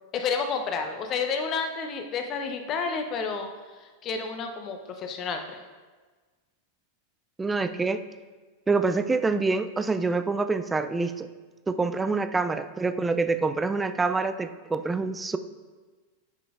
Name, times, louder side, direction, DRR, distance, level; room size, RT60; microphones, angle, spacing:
voice 1, 0.1-3.5 4.0-5.6, left 5 dB, 35° left, 5 dB, 0.7 m, -30 dB
voice 2, 7.4-8.0 8.7-11.3 11.7-15.4, right 3 dB, 10° right, 11 dB, 0.3 m, -26 dB
8.9 x 5.8 x 2.5 m, 1.4 s
figure-of-eight pair, 90°, 0 cm